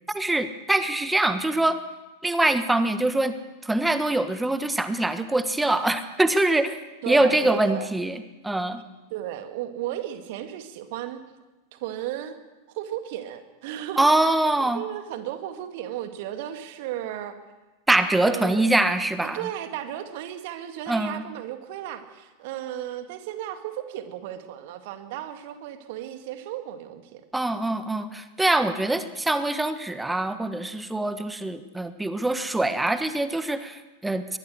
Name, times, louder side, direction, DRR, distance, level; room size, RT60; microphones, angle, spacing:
voice 1, 0.1-1.8 2.2-6.8 7.1-8.8 14.0-14.8 17.9-19.5 20.9-21.2 27.3-34.4, right 2 dB, 5° right, 11 dB, 1.4 m, -24 dB
voice 2, 7.0-7.9 9.1-11.2 11.7-12.4 12.7-14.3 14.7-17.4 18.2-18.7 19.3-27.2, right 12 dB, 50° right, 8 dB, 2.2 m, -34 dB
22.5 x 20.0 x 6.6 m, 1.1 s
figure-of-eight pair, 90°, 0 cm